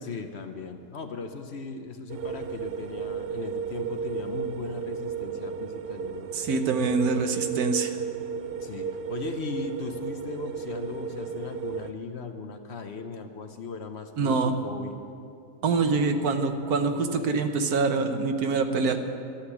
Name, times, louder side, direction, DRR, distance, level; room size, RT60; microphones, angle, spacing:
voice 1, 0.0-6.3 8.6-15.0, left 4 dB, 55° left, 6 dB, 1.0 m, -38 dB
sound 1, 2.1-11.9, right 6 dB, 70° right, 0.5 m, -34 dB
voice 2, 6.3-7.9 14.2-14.5 15.6-19.0, right 4 dB, 85° right, 7 dB, 1.5 m, -25 dB
13.0 x 8.1 x 9.9 m, 2.5 s
omnidirectional pair, 1.5 m